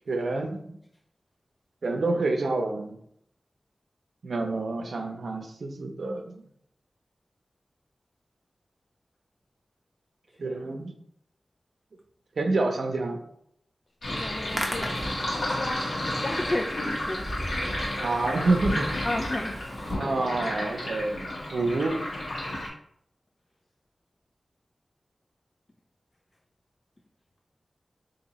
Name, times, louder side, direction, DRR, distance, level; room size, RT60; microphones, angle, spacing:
voice 1, 0.1-0.8 1.8-3.0 4.2-6.4 10.4-10.9 12.4-13.2 18.0-18.9 20.0-22.0, right 2 dB, 85° right, 4 dB, 0.6 m, -28 dB
voice 2, 1.9-2.2 10.4-10.8 14.1-14.9 15.5-15.9 16.2-18.1 19.0-19.6, left 1 dB, 40° left, 1 dB, 0.4 m, -34 dB
Sink (filling or washing), 14.0-22.7, left 1 dB, 85° left, 1.4 m, -32 dB
Hands, 14.3-19.9, equal, 5° left, 0.9 m, -37 dB
2.9 x 2.7 x 4.0 m, 0.69 s
wide cardioid pair, 55°, 0 cm